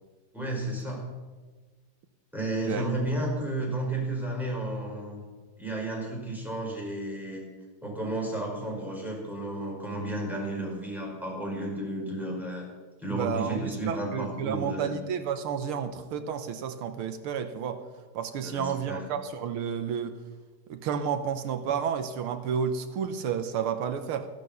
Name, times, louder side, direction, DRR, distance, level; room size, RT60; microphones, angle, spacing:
voice 1, 0.3-1.0 2.3-5.2 5.6-7.4 7.8-12.7 13.0-14.9 18.4-19.0, right 1 dB, ahead, -2 dB, 5.1 m, -32 dB
voice 2, 13.1-17.8 18.1-20.2 20.7-24.3, right 7 dB, 85° right, 9 dB, 1.8 m, -31 dB
15.5 x 12.0 x 6.9 m, 1.3 s
omnidirectional pair, 2.4 m